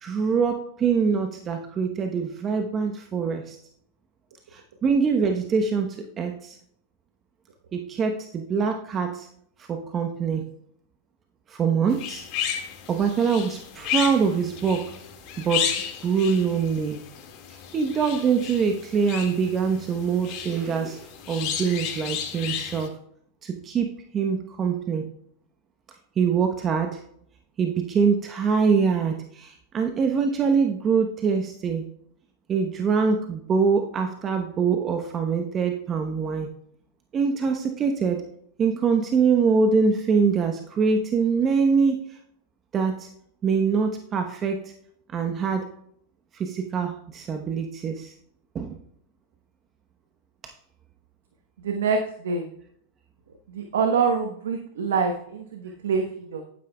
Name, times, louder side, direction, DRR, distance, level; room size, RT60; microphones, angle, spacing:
voice 1, 0.0-3.6 4.5-6.6 7.7-9.3 9.6-10.4 11.5-12.2 12.9-14.9 15.4-15.7 16.0-17.0 17.5-22.9 23.4-25.1 26.2-27.0 27.6-31.8 32.5-36.5 37.1-38.2 38.6-42.2 42.7-43.1 43.4-44.7 45.1-45.7 46.3-48.1 48.5-48.8 50.4-50.5, right 5 dB, 30° right, 4 dB, 1.0 m, -24 dB
sound 1, 11.9-22.9, left 9 dB, 50° left, 1.9 m, -33 dB
voice 2, 51.6-52.5 53.5-56.4, right 5 dB, 75° right, 4 dB, 1.0 m, -26 dB
11.0 x 9.3 x 2.3 m, 0.67 s
hypercardioid pair, 100°, 0 cm